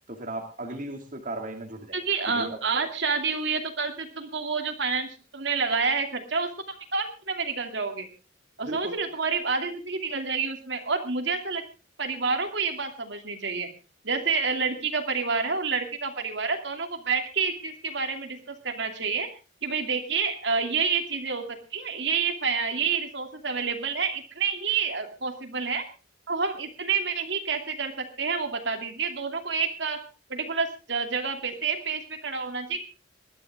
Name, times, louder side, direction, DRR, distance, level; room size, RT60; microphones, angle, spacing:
voice 1, 0.1-2.0 2.3-2.6 8.7-9.0, right 1 dB, 40° right, 2 dB, 2.3 m, -36 dB
voice 2, 1.9-8.1 8.6-11.6 12.0-13.7 14.0-19.3 19.6-25.9 26.3-30.0 30.3-32.8, right 5 dB, 60° right, 5 dB, 2.7 m, -28 dB
20.5 x 13.0 x 3.6 m, 0.32 s
head